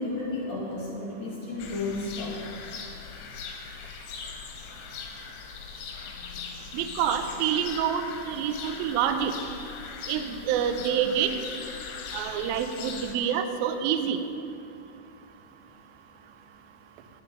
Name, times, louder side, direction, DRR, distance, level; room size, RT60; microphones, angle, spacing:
voice 1, 0.0-2.4 6.8-7.1 7.5-7.6, left 2 dB, 60° left, -3 dB, 2.4 m, -33 dB
sound 1, 1.6-13.1, left 6 dB, 75° left, 2.7 m, -40 dB
voice 2, 6.7-9.3 10.1-11.3 12.1-14.2, right 9 dB, 90° right, 7 dB, 2.1 m, -27 dB
10.0 x 9.4 x 5.3 m, 2.8 s
omnidirectional pair, 5.0 m